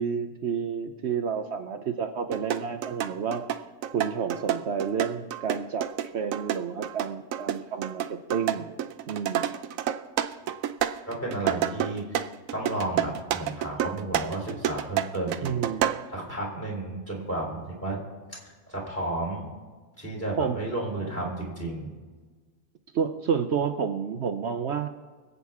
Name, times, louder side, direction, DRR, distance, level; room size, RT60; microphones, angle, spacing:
voice 1, 0.0-3.4 3.9-5.9 6.1-8.8 9.1-9.5 15.4-15.9 20.4-20.6 22.9-24.9, right 6 dB, 60° right, 7 dB, 0.9 m, -30 dB
sound 1, 2.3-16.1, right 10 dB, 85° right, 1.0 m, -29 dB
voice 2, 11.1-12.2 12.5-15.5 16.1-18.0 18.3-18.4 18.7-19.4 20.0-21.9, right 2 dB, 10° left, -3 dB, 3.6 m, -32 dB
25.0 x 8.4 x 3.6 m, 1.4 s
omnidirectional pair, 1.4 m